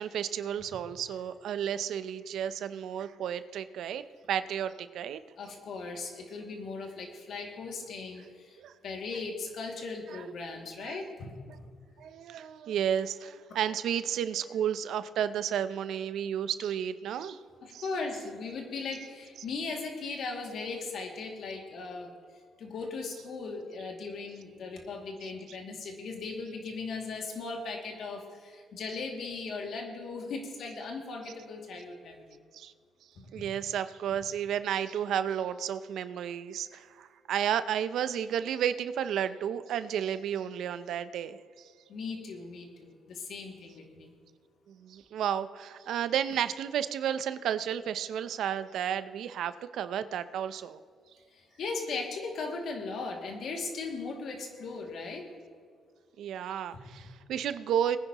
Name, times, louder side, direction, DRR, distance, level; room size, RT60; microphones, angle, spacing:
voice 1, 0.0-5.2 8.6-8.7 10.1-10.3 10.8-11.0 12.0-17.4 17.7-17.8 32.5-32.7 33.3-41.7 44.7-50.8 56.2-58.0, right 9 dB, 75° right, 12 dB, 0.6 m, -32 dB
voice 2, 5.4-11.6 17.6-22.1 22.6-32.2 33.2-33.5 41.9-44.1 51.3-55.3, left 4 dB, 65° left, 1 dB, 2.4 m, -38 dB
21.5 x 10.0 x 3.0 m, 2.1 s
cardioid pair, 90°, 0 cm